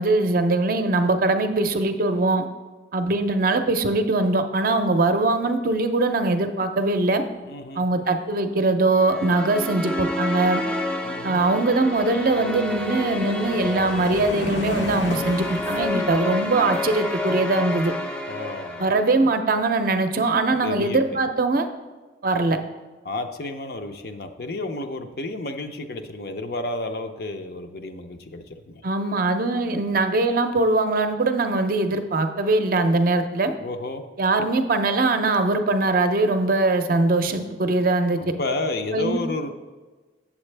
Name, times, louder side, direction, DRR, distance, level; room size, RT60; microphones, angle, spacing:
voice 1, 0.0-2.4 2.9-7.2 7.8-10.6 11.2-17.9 18.8-21.7 22.2-22.6 28.8-33.5 34.2-38.2 38.9-39.2, right 2 dB, 50° right, 7 dB, 0.5 m, -21 dB
voice 2, 7.4-7.8 11.0-11.4 18.3-18.9 20.6-21.2 23.0-28.8 33.6-34.0 38.2-39.5, left 2 dB, 55° left, 6 dB, 0.6 m, -31 dB
sound 1, 8.9-19.3, left 1 dB, 5° left, 0.5 m, -30 dB
sound 2, 11.1-11.2 11.5-17.2, left 1 dB, 75° left, 0.9 m, -35 dB
8.0 x 7.2 x 3.3 m, 1.3 s
head